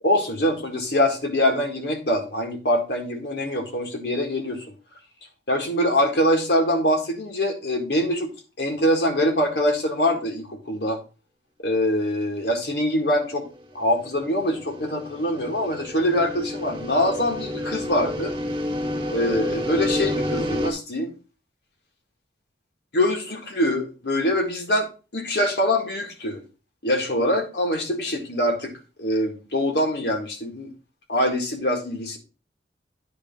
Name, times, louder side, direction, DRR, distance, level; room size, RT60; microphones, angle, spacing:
voice 1, 0.0-4.7 5.5-8.3 8.6-11.0 11.6-13.4 13.7-18.3 19.1-21.1 22.9-26.4 26.8-28.7 29.0-30.7 31.1-32.2, left 1 dB, 70° left, 3 dB, 1.9 m, -24 dB
sound 1, 14.0-20.7, left 1 dB, 25° right, 1.2 m, -30 dB
9.7 x 3.5 x 5.4 m, 0.32 s
head